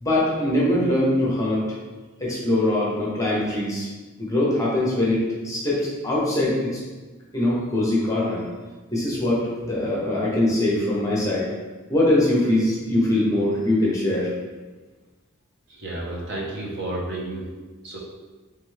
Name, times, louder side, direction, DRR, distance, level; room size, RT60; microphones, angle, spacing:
voice 1, 0.0-1.6 2.2-3.9 4.2-6.7 7.3-8.4 8.9-11.5 11.9-14.3, left 1 dB, 15° left, -6 dB, 0.8 m, -22 dB
voice 2, 15.7-17.4 17.8-18.0, right 1 dB, 55° right, -4 dB, 0.9 m, -31 dB
3.4 x 3.4 x 3.2 m, 1.3 s
head